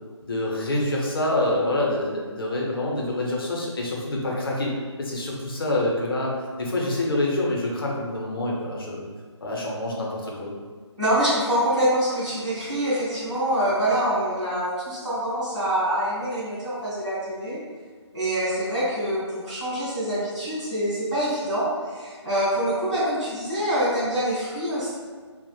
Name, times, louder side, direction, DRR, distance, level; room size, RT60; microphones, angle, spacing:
voice 1, 0.2-4.7 5.0-9.0 9.4-10.5, left 1 dB, 50° left, -3 dB, 0.6 m, -26 dB
voice 2, 11.0-17.6 18.1-24.9, right 1 dB, 10° right, -18 dB, 0.4 m, -25 dB
2.3 x 2.0 x 3.0 m, 1.5 s
figure-of-eight pair, 170°, 15 cm